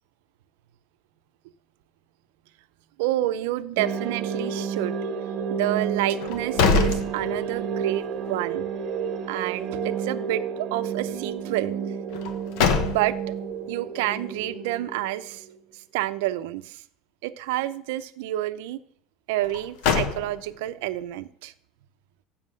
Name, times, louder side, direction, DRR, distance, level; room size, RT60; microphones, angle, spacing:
voice 1, 3.0-5.0 5.5-8.6 9.3-12.0 12.8-15.5 15.7-16.8 17.2-18.8 19.3-21.5, right 15 dB, 85° right, 12 dB, 0.6 m, -29 dB
sound 1, 3.8-15.6, right 6 dB, 40° right, 1.2 m, -31 dB
sound 2, 6.2-7.8 8.2-8.3 12.1-13.4 19.4-20.7, left 5 dB, 65° left, 1.1 m, -25 dB
7.5 x 6.6 x 6.5 m, 0.64 s
cardioid pair, 170°, 0 cm